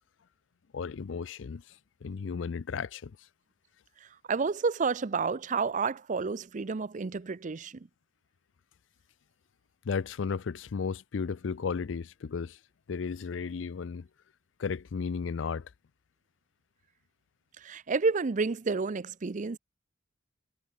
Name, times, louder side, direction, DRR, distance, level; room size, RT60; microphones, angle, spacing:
voice 1, 0.7-3.3 9.8-12.6 12.9-14.1 14.6-15.7, left 5 dB, 85° left, 0.5 m, -34 dB
voice 2, 4.3-7.9 17.6-19.6, right 4 dB, 45° right, 0.5 m, -30 dB
head